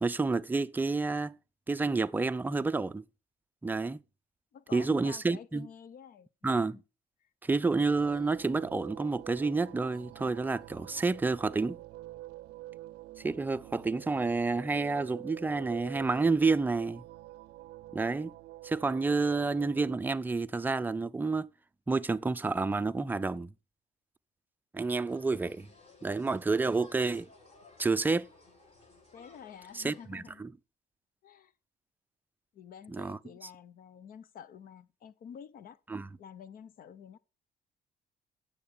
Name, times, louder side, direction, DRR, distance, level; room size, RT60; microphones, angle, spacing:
voice 1, 0.0-1.4 1.7-3.0 3.6-4.0 4.7-5.7 6.4-6.8 7.4-11.8 13.2-17.0 17.9-18.3 18.6-21.5 21.9-23.5 24.7-25.7 26.0-27.3 27.8-28.3 29.7-30.5 32.9-33.2 35.9-36.1, right 3 dB, 10° right, 0.5 m, -29 dB
voice 2, 4.5-6.8 7.2-7.3 29.1-30.4 31.2-31.5 32.5-35.8 36.2-37.2, left 8 dB, 60° left, 0.9 m, -49 dB
sound 1, 7.8-20.0, right 16 dB, 75° right, 0.5 m, -48 dB
sound 2, 25.0-30.1, left 2 dB, 35° left, 7.9 m, -58 dB
9.2 x 7.2 x 7.0 m
cardioid pair, 110°, 17 cm